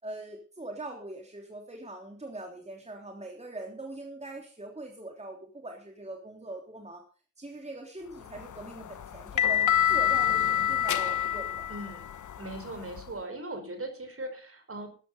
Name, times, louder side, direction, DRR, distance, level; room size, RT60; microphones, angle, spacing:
voice 1, 0.0-7.0 7.4-9.6 9.9-11.7, right 2 dB, 20° right, 1 dB, 3.4 m, -42 dB
sound 1, 8.3-13.1, left 10 dB, 70° left, 0.9 m, -27 dB
voice 2, 11.7-14.9, right 1 dB, 45° right, 6 dB, 4.9 m, -39 dB
13.0 x 11.0 x 5.5 m, 0.39 s
cardioid pair, 65°, 31 cm